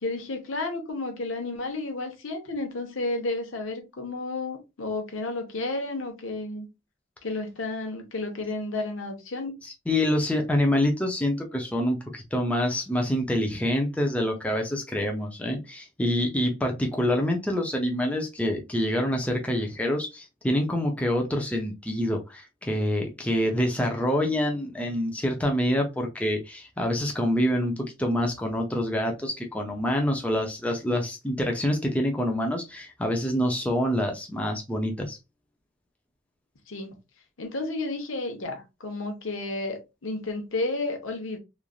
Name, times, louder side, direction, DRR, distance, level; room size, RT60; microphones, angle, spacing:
voice 1, 0.0-6.7 7.2-9.5 36.7-36.9 37.4-41.4, left 2 dB, 80° left, 0.9 m, -32 dB
voice 2, 9.9-35.2, left 1 dB, 5° left, 0.5 m, -26 dB
3.1 x 2.5 x 2.3 m
head